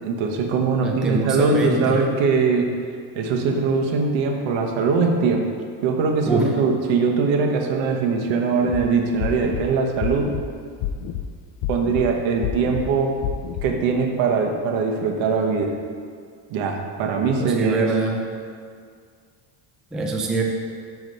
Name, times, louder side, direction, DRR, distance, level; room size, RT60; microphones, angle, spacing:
voice 1, 0.0-2.7 3.1-5.5 5.8-10.3 11.7-13.1 13.6-15.7 16.5-17.8, right 4 dB, 85° right, 2 dB, 1.1 m, -21 dB
voice 2, 0.8-1.9 6.3-6.5 17.4-18.2 19.9-20.4, right 3 dB, ahead, 0 dB, 0.3 m, -24 dB
sound 1, 8.6-8.8 9.2-9.6 10.0-10.4 10.8-11.2 11.6-12.0 12.4-12.8 13.2-13.7, left 12 dB, 50° left, 0.5 m, -28 dB
6.0 x 4.7 x 6.6 m, 2.1 s
cardioid pair, 160°, 44 cm